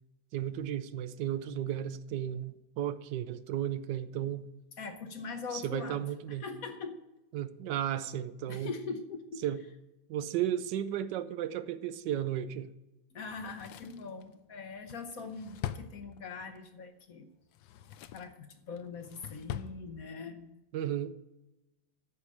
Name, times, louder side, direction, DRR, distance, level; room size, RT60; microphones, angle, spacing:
voice 1, 0.3-4.4 5.5-6.5 7.3-8.7 9.4-9.6 10.1-12.7 20.7-21.1, right 10 dB, 75° right, 13 dB, 1.2 m, -34 dB
voice 2, 4.8-7.0 8.5-9.4 13.1-17.3 18.1-20.5, left 4 dB, 60° left, 7 dB, 1.1 m, -42 dB
Drawer open or close, 13.3-16.6 17.4-18.4 18.8-19.8 20.1-20.2, left 10 dB, 80° left, 1.3 m, -43 dB
12.5 x 4.8 x 8.4 m, 0.99 s
omnidirectional pair, 2.0 m